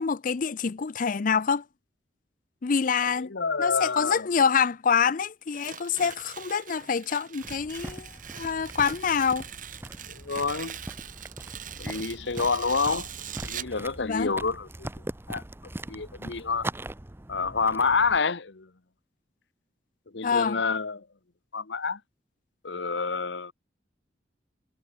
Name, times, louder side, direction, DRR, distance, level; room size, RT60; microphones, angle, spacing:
voice 1, 0.0-1.6 2.6-3.3 3.6-9.4 14.0-14.3 20.2-20.6, left 6 dB, 45° left, 0.5 m, -26 dB
voice 2, 3.2-4.3 10.1-10.8 11.8-13.1 13.4-14.9 15.3-15.4 15.9-16.7 17.3-18.7 20.1-21.0 21.5-22.0 22.6-23.5, left 4 dB, 75° left, 1.1 m, -28 dB
Tearing, 5.5-13.8, right 10 dB, 45° right, 2.5 m, -42 dB
sound 1, 7.4-18.2, right 1 dB, 15° right, 0.6 m, -41 dB
head